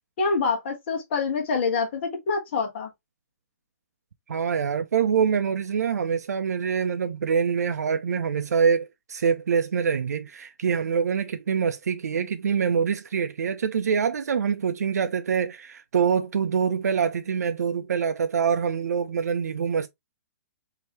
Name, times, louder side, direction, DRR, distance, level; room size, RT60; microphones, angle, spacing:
voice 1, 0.2-2.9, left 4 dB, 45° left, 1.3 m, -26 dB
voice 2, 4.3-19.9, right 6 dB, 90° right, 0.5 m, -25 dB
4.6 x 2.8 x 2.9 m
hypercardioid pair, 155°, 8 cm